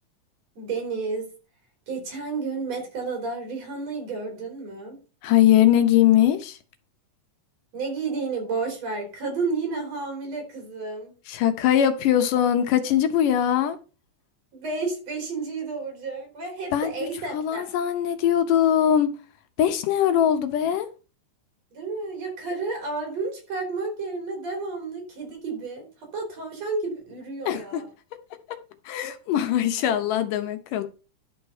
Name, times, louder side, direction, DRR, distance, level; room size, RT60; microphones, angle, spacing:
voice 1, 0.6-1.3 1.9-5.0 7.7-11.1 14.5-17.7 21.7-27.9, right 4 dB, 50° right, 4.5 m, -31 dB
voice 2, 5.2-6.6 11.3-13.8 16.7-16.9 17.3-19.1 19.6-20.9 27.5-27.8 28.9-30.8, left 10 dB, 80° left, 2.6 m, -21 dB
11.5 x 5.2 x 5.6 m
omnidirectional pair, 3.8 m